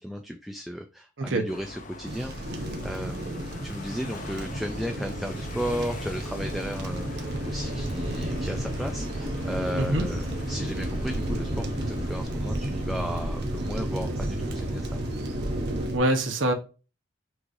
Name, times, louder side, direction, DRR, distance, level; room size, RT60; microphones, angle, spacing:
voice 1, 0.0-15.0, equal, ahead, 0.3 m, -35 dB
sound 1, 1.5-12.3, left 2 dB, 40° left, 0.6 m, -44 dB
sound 2, 2.0-16.0, right 1 dB, 55° right, 0.8 m, -33 dB
sound 3, 6.9-15.9, equal, 30° right, 1.4 m, -34 dB
voice 2, 15.9-16.5, right 1 dB, 75° right, 1.0 m, -24 dB
6.0 x 3.2 x 2.6 m
head